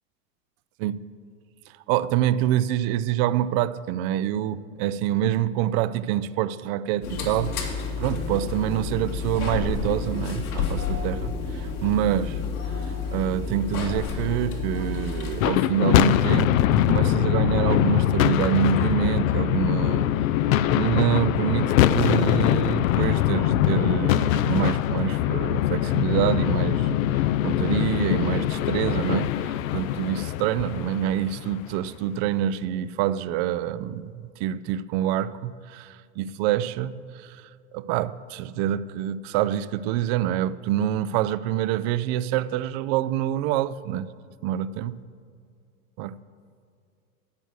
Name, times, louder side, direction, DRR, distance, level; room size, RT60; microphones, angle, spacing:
voice 1, 1.9-7.6 8.0-12.4 13.1-20.1 20.5-34.1 34.4-37.4 37.7-44.1 44.4-44.9 46.0-46.2, right 11 dB, 45° right, 17 dB, 0.5 m, -26 dB
sound 1, 7.0-15.5, left 5 dB, 80° left, 2.4 m, -30 dB
sound 2, 15.3-31.7, left 12 dB, 65° left, 0.5 m, -22 dB
12.5 x 7.8 x 6.3 m, 2.3 s
hypercardioid pair, 105°, 43 cm